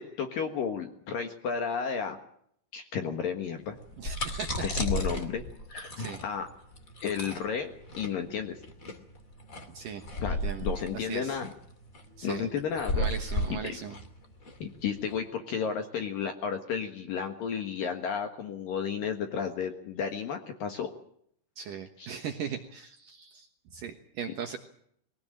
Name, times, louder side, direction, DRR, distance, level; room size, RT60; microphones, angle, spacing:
voice 1, 0.0-2.2 2.7-3.8 4.6-6.5 7.0-8.6 10.2-11.5 12.2-13.1 13.5-13.8 14.6-20.9 22.0-22.1, left 7 dB, 60° left, 6 dB, 2.6 m, -33 dB
sound 1, 3.7-15.2, left 1 dB, 30° left, 1.6 m, -34 dB
voice 2, 4.0-4.5 6.0-6.2 9.7-10.7 10.9-11.4 12.2-12.5 12.9-14.0 21.6-24.6, right 7 dB, 70° right, 5 dB, 2.1 m, -39 dB
22.5 x 17.0 x 8.9 m, 0.68 s
omnidirectional pair, 5.6 m